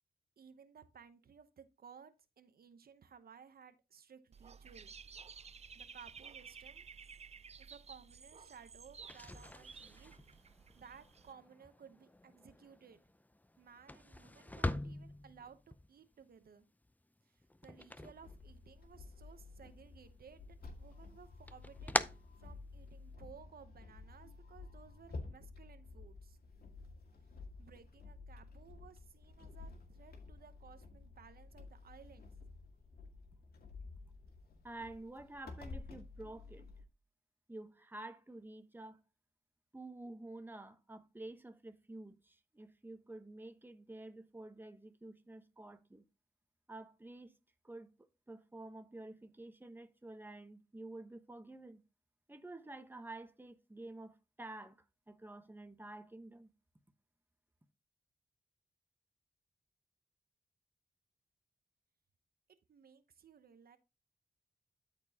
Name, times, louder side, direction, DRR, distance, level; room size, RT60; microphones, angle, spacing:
voice 1, 0.4-4.9 5.7-6.9 7.6-10.4 10.7-13.0 13.6-16.7 17.2-26.4 27.6-32.3 62.7-63.8, right 7 dB, 70° right, 0.9 m, -58 dB
Dog / Bird, 4.3-11.3, right 6 dB, 40° right, 0.5 m, -54 dB
sound 1, 9.0-19.0 19.3-20.1 20.5-23.1, left 1 dB, 10° left, 0.5 m, -43 dB
sound 2, 18.1-36.8, left 3 dB, 70° left, 1.9 m, -52 dB
voice 2, 34.6-36.6 37.5-39.0 39.7-46.0 46.7-47.4 47.6-47.9 48.3-51.8 52.3-56.5, right 2 dB, 10° right, 1.0 m, -50 dB
13.0 x 4.5 x 2.8 m
cardioid pair, 65°, 16 cm